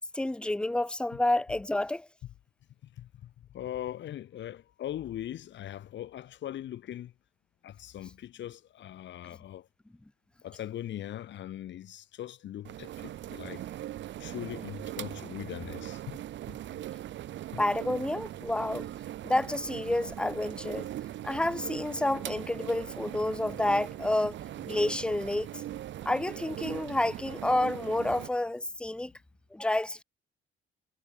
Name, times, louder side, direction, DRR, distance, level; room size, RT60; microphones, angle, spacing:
voice 1, 0.1-2.1 17.6-18.9 19.2-20.9 21.2-24.4 24.6-25.5 26.1-29.1 29.5-30.0, left 1 dB, 5° left, 0.4 m, -29 dB
voice 2, 2.8-7.1 7.6-9.7 10.4-13.6 14.2-16.2 16.5-16.6 17.5-17.6, left 12 dB, 65° left, 1.0 m, -40 dB
sound 1, 12.6-28.3, right 13 dB, 70° right, 0.8 m, -40 dB
cardioid pair, 90°, 20 cm